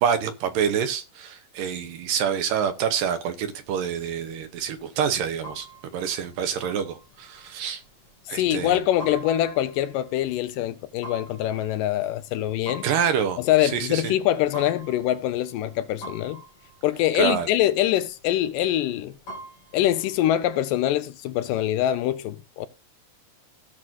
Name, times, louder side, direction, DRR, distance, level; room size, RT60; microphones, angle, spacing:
voice 1, 0.0-5.7 5.9-7.8 8.3-8.8 12.8-14.1 17.2-17.5, right 8 dB, 80° right, 2.6 m, -27 dB
sound 1, 3.4-20.7, right 2 dB, 40° left, 3.5 m, -46 dB
voice 2, 8.3-12.9 13.4-16.4 16.8-19.1 19.7-22.7, left 13 dB, 80° left, 2.2 m, -24 dB
17.0 x 6.1 x 2.6 m
omnidirectional pair, 4.0 m